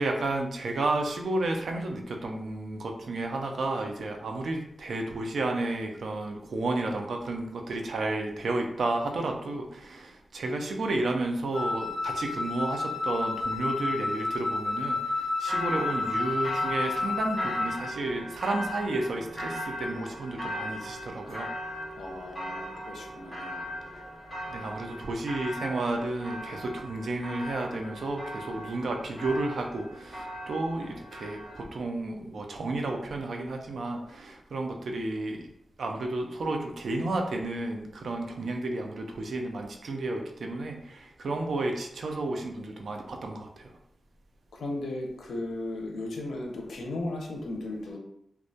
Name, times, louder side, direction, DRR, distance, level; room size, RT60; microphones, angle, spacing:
voice 1, 0.0-21.5 24.5-35.5 35.8-43.7, right 2 dB, 60° right, 3 dB, 0.3 m, -32 dB
Wind instrument woodwind instrument, 11.5-17.8, left 3 dB, 45° left, 0.7 m, -30 dB
sound 1, 15.5-31.6, equal, 5° right, 0.6 m, -39 dB
voice 2, 21.9-23.6 44.5-48.0, left 2 dB, 90° left, 1 dB, 0.5 m, -36 dB
2.2 x 2.1 x 2.6 m, 0.75 s
wide cardioid pair, 180°, 0 cm